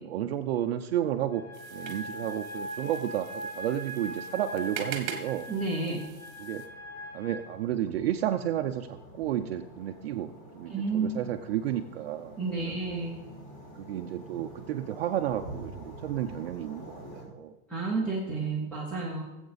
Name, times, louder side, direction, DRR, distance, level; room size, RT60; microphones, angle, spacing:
voice 1, 0.0-1.5 1.7-5.5 6.4-6.6 7.1-12.8 13.8-17.5, right 11 dB, 45° right, 6 dB, 0.6 m, -32 dB
sound 1, 1.3-7.5, equal, 70° left, 3.3 m, -40 dB
sound 2, 1.5-6.7, right 9 dB, 30° right, 1.3 m, -43 dB
sound 3, 5.4-17.2, right 1 dB, 25° left, 4.1 m, -48 dB
voice 2, 5.5-6.0 10.7-11.1 12.4-13.2 17.7-19.2, right 4 dB, ahead, -3 dB, 0.5 m, -30 dB
19.5 x 7.9 x 4.0 m, 1.1 s
supercardioid pair, 170°, 45 cm